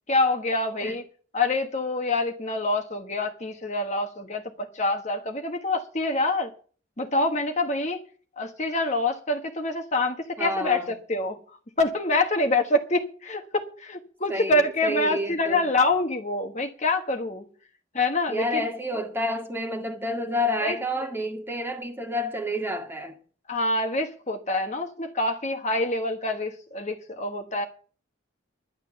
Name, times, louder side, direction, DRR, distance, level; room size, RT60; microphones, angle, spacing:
voice 1, 0.1-1.0 1.3-6.5 7.0-8.0 8.4-11.4 11.8-17.4 17.9-18.6 20.6-20.8 23.5-27.6, left 2 dB, 35° left, 1.3 m, -26 dB
voice 2, 10.4-10.9 14.3-15.7 18.3-23.2, left 1 dB, 10° right, 1.9 m, -29 dB
11.0 x 10.5 x 6.8 m
head